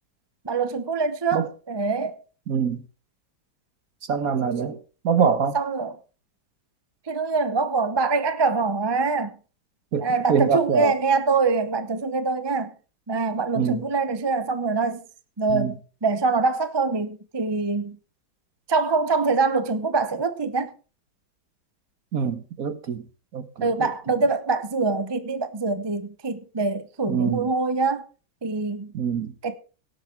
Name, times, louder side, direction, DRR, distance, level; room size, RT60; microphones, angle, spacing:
voice 1, 0.4-2.2 4.6-4.7 5.5-5.9 7.1-9.4 10.0-12.7 13.1-15.0 15.4-15.8 16.0-18.0 18.7-20.7 23.6-28.1 28.4-28.9 29.4-29.6, right 4 dB, 25° right, 0.5 m, -24 dB
voice 2, 2.5-2.8 4.1-4.8 5.0-5.6 9.9-10.9 13.5-13.8 15.5-15.7 22.1-23.0 23.3-23.9 27.1-27.5 28.9-29.3, right 6 dB, 50° right, 1.5 m, -24 dB
17.5 x 8.5 x 4.6 m
omnidirectional pair, 2.1 m